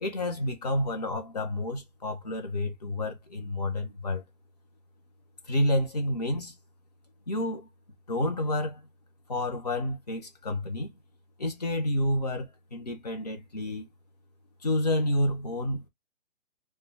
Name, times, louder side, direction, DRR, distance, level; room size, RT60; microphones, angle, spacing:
voice 1, 0.0-4.2 5.5-6.5 7.3-7.7 8.1-8.8 9.3-10.9 11.4-13.9 14.6-15.9, left 1 dB, 30° left, 0.4 m, -29 dB
2.3 x 2.2 x 3.1 m
hypercardioid pair, 155°, 42 cm